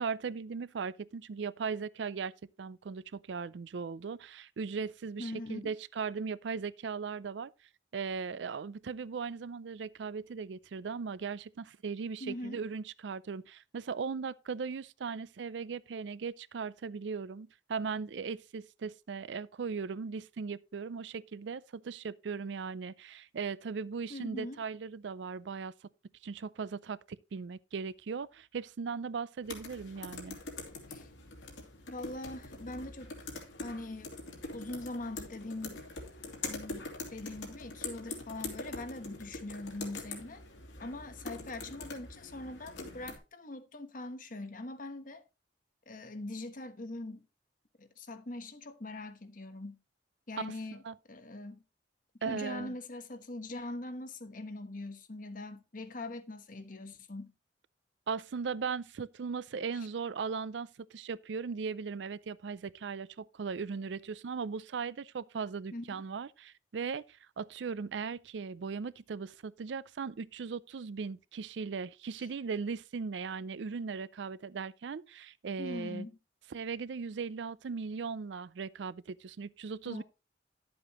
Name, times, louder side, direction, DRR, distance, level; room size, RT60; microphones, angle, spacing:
voice 1, 0.0-2.3 2.6-7.5 7.9-25.7 26.2-30.4 50.4-50.5 50.8-50.9 52.2-52.7 58.1-76.1 76.5-80.0, right 5 dB, 75° right, 0.4 m, -38 dB
voice 2, 5.2-5.6 12.2-12.6 24.1-24.6 30.9-31.1 31.9-33.3 33.6-34.1 34.5-35.8 36.5-40.4 40.8-45.2 45.9-47.2 47.8-49.8 50.3-50.8 51.1-51.6 52.2-57.3 59.7-59.9 65.7-66.0 72.2-72.3 75.6-76.1 79.8-80.0, left 2 dB, 50° left, 1.2 m, -42 dB
sound 1, 29.4-43.2, left 3 dB, 90° left, 2.7 m, -44 dB
11.0 x 7.8 x 3.0 m
head